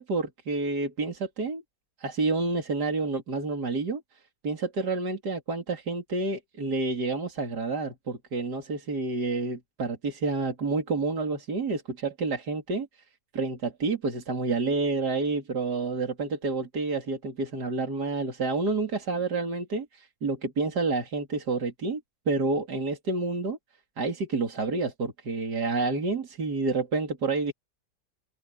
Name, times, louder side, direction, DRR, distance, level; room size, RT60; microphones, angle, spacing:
voice 1, 0.0-1.6 2.0-4.0 4.4-12.9 13.3-22.0 22.3-23.6 24.0-27.5, right 3 dB, 65° right, 3.5 m, -29 dB
omnidirectional pair, 1.9 m